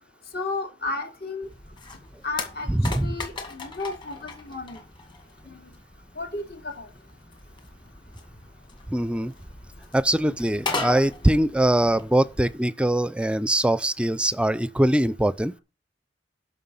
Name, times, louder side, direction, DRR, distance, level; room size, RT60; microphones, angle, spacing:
voice 1, 0.3-1.5 2.2-2.7 3.0-4.8 6.2-6.9, left 3 dB, 60° left, 2.7 m, -33 dB
sound 1, 1.4-12.6, left 3 dB, 25° left, 2.1 m, -38 dB
voice 2, 2.7-3.2 8.9-9.3 9.9-15.5, right 1 dB, 5° right, 0.5 m, -22 dB
11.5 x 6.0 x 5.5 m
head